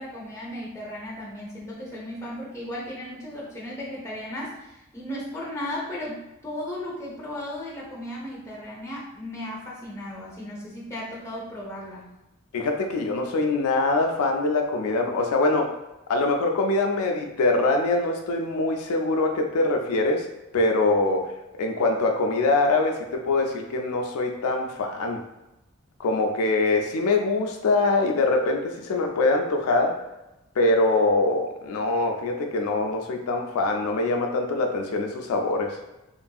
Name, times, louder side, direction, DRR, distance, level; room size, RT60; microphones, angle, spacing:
voice 1, 0.0-12.1, left 1 dB, 15° left, -4 dB, 0.7 m, -35 dB
voice 2, 12.5-15.7 16.1-20.3 20.5-21.3 21.6-25.2 26.0-30.0 30.6-35.8, left 2 dB, 75° left, 3 dB, 0.4 m, -23 dB
3.0 x 2.5 x 2.3 m, 0.96 s
head